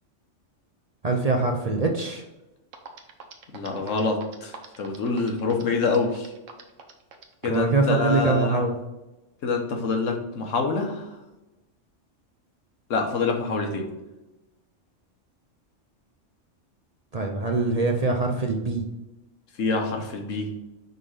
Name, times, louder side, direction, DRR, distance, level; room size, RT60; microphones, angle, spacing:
voice 1, 1.0-2.2 7.5-8.7 17.1-18.8, right 3 dB, 45° right, 2 dB, 0.6 m, -23 dB
sound 1, 2.4-2.5 2.7-7.7, right 5 dB, 80° right, 1.2 m, -43 dB
voice 2, 3.5-6.3 7.4-8.6 9.4-11.0 12.9-13.9 19.6-20.5, left 4 dB, 85° left, 3 dB, 1.4 m, -26 dB
5.3 x 3.8 x 4.9 m, 1.0 s
omnidirectional pair, 1.3 m